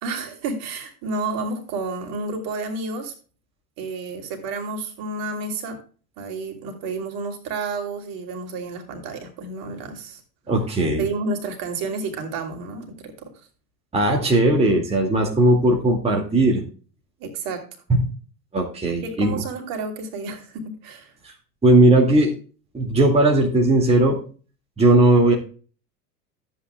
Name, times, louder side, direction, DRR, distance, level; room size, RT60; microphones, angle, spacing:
voice 1, 0.0-3.1 3.8-5.8 6.2-10.2 11.0-13.3 17.2-17.6 19.0-21.1, right 3 dB, 45° right, 4 dB, 3.0 m, -30 dB
voice 2, 10.5-11.0 13.9-16.6 17.9-18.0 18.5-19.4 21.2-21.3 21.6-22.3 22.7-24.2 24.8-25.3, right 1 dB, 15° right, 0 dB, 2.1 m, -17 dB
13.5 x 8.8 x 2.3 m, 0.38 s
figure-of-eight pair, 80°, 48 cm